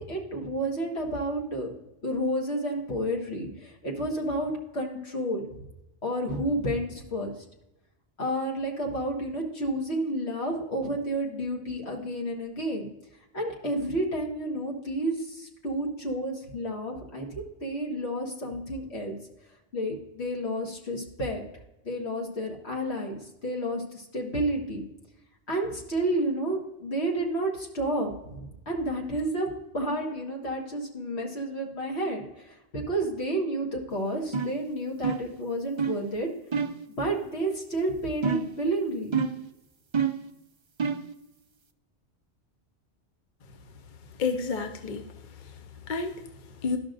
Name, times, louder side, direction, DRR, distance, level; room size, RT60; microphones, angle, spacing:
voice 1, 0.0-1.7 2.0-5.5 6.0-7.3 8.2-12.9 13.3-19.2 19.7-21.4 21.8-24.8 25.5-29.5 29.7-36.3 37.0-39.1, right 1 dB, 70° left, 0 dB, 1.9 m, -30 dB
sound 1, 34.3-34.6 35.0-35.4 35.8-36.0 36.5-36.8 38.2-38.6 39.1-39.5 39.9-40.3 40.8-41.1, right 6 dB, 40° right, 0.4 m, -28 dB
voice 2, 44.2-46.8, left 4 dB, 50° left, 7 dB, 0.7 m, -32 dB
12.5 x 5.9 x 2.6 m, 0.92 s
omnidirectional pair, 1.1 m